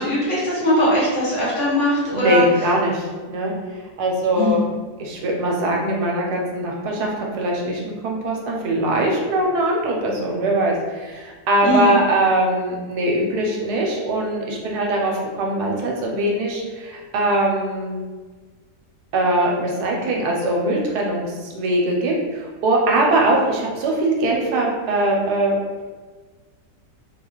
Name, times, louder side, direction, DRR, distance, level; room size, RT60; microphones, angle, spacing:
voice 1, 0.0-2.4 4.3-4.6 11.6-11.8, equal, 50° left, -8 dB, 1.2 m, -20 dB
voice 2, 2.1-3.5 4.0-4.7 5.0-18.0 19.1-25.6, right 1 dB, 80° right, -1 dB, 1.1 m, -21 dB
3.4 x 2.3 x 2.9 m, 1.4 s
omnidirectional pair, 1.8 m